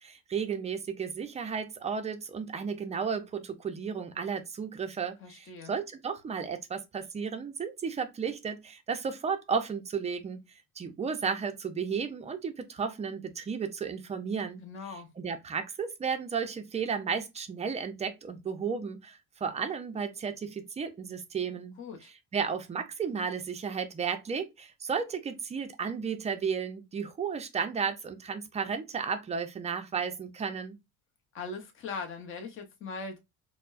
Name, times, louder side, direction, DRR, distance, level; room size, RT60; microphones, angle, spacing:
voice 1, 0.0-10.4 10.8-14.6 14.9-21.8 22.0-30.8, right 6 dB, 20° right, 0.4 m, -33 dB
voice 2, 5.2-5.7 14.6-15.1 21.8-22.1 31.3-33.2, left 4 dB, 40° left, 0.9 m, -40 dB
4.3 x 2.1 x 2.4 m
cardioid pair, 145°, 33 cm